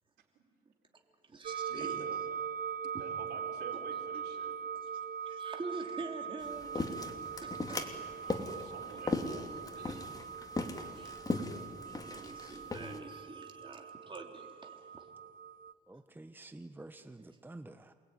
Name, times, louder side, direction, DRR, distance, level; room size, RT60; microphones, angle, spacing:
voice 1, 0.6-2.3 2.9-3.0 3.7-3.8 4.1-4.5 4.8-8.0 8.3-8.4 8.7-9.2 9.6-10.0 11.0-11.2 11.9-15.1 17.2-17.4, right 3 dB, 30° right, 2 dB, 3.6 m, -47 dB
sound 1, 1.4-15.7, right 7 dB, 55° right, 0.9 m, -42 dB
voice 2, 1.7-2.2 3.0-4.5 8.2-9.2 9.6-10.1, right 7 dB, 90° right, 2 dB, 4.4 m, -51 dB
sound 2, 6.4-13.0, left 3 dB, 20° left, 3.0 m, -38 dB
voice 3, 15.9-17.9, right 2 dB, 10° right, 9 dB, 1.0 m, -49 dB
28.5 x 21.0 x 9.8 m, 2.2 s
cardioid pair, 95°, 17 cm